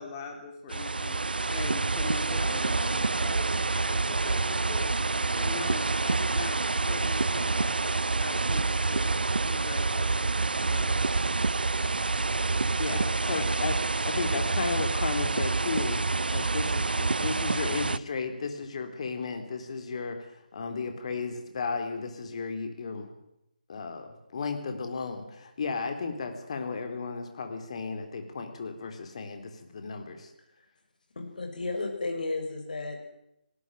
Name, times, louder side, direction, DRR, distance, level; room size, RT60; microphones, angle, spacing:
voice 1, 0.0-7.7 8.2-9.1 9.4-10.1 10.6-11.0 13.3-13.5, left 5 dB, 20° left, 3 dB, 3.5 m, -42 dB
sound 1, 0.7-18.0, right 3 dB, 75° right, 0.7 m, -27 dB
voice 2, 12.8-13.8 14.0-16.0 16.3-23.1 23.7-30.3, left 4 dB, 40° left, 6 dB, 3.8 m, -34 dB
voice 3, 31.1-33.0, left 3 dB, 55° left, 3 dB, 6.8 m, -33 dB
19.5 x 17.5 x 9.2 m, 0.85 s
figure-of-eight pair, 160°, 5 cm